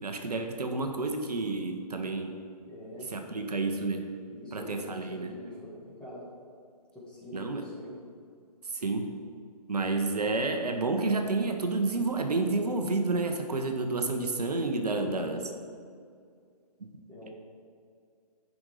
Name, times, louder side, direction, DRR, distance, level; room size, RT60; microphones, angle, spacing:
voice 1, 0.0-2.4 3.1-4.1 4.5-5.4 7.3-7.6 8.7-9.2 9.7-15.5 16.8-16.9 17.2-17.3, right 3 dB, 70° right, 4 dB, 1.0 m, -30 dB
voice 2, 2.7-3.7 4.3-6.2 6.9-8.0 14.9-15.5 17.1-17.3, left 1 dB, 5° left, -8 dB, 1.8 m, -45 dB
10.5 x 5.2 x 4.9 m, 2.2 s
figure-of-eight pair, 140°, 21 cm